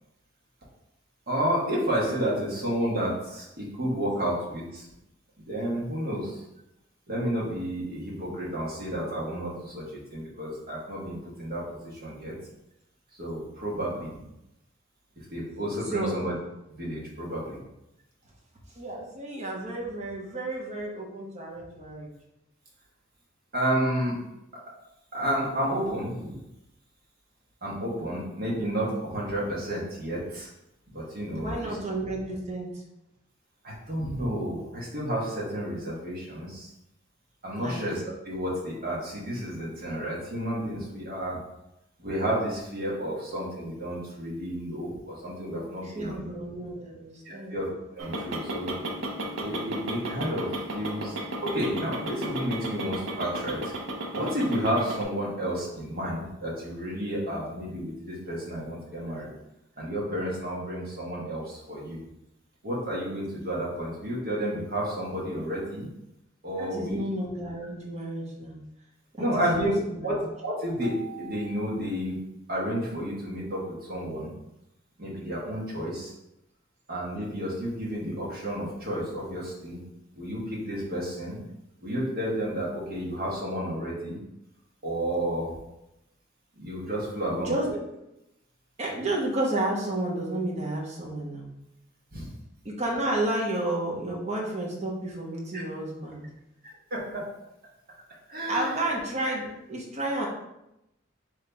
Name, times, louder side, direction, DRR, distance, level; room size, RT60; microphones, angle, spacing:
voice 1, 1.3-4.8 5.5-6.4 7.1-12.3 13.1-14.2 15.3-16.4 16.7-17.6 23.5-24.2 25.1-26.4 27.6-30.5 30.9-31.8 33.6-36.7 37.4-41.4 42.0-46.3 47.2-47.7 47.9-48.7 49.4-53.6 54.1-59.3 59.8-62.0 62.6-65.9 66.4-67.0 69.2-69.7 70.0-72.2 72.5-74.3 75.0-76.1 76.9-79.8 80.2-81.4 81.8-84.2 84.8-85.5 86.6-87.5 92.1-92.3 95.5-95.6 96.9-97.3 98.3-98.9, equal, 50° right, -5 dB, 1.4 m, -31 dB
voice 2, 18.7-22.1 31.4-32.8 37.6-37.8 45.8-47.6 66.5-68.6 69.2-69.3 69.6-70.2 87.4-87.8 88.8-91.5 92.6-96.2 98.5-100.3, right 1 dB, 35° right, -3 dB, 1.0 m, -31 dB
sound 1, 48.0-55.0, right 1 dB, 80° right, 0.7 m, -34 dB
3.4 x 3.1 x 3.9 m, 0.87 s
head